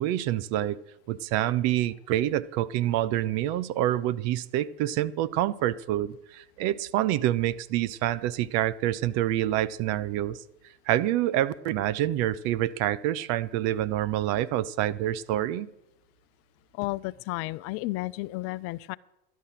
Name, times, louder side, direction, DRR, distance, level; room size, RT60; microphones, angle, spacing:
voice 1, 0.0-10.4 10.9-15.7, right 13 dB, 50° right, 0.7 m, -27 dB
voice 2, 16.7-19.0, left 20 dB, 45° left, 0.5 m, -32 dB
12.0 x 10.5 x 5.7 m
hypercardioid pair, 100°, 33 cm